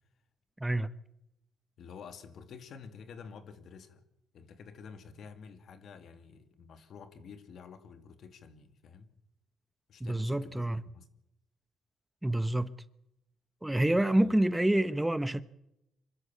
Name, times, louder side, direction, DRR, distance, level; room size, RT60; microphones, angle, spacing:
voice 1, 1.8-4.0 4.3-9.1 9.9-10.6 10.8-11.1 14.2-14.4, left 6 dB, 65° left, 2.4 m, -49 dB
voice 2, 10.0-10.8 12.2-12.7 13.6-15.4, right 1 dB, 10° right, 0.9 m, -27 dB
25.0 x 13.5 x 8.6 m
cardioid pair, 90°, 0 cm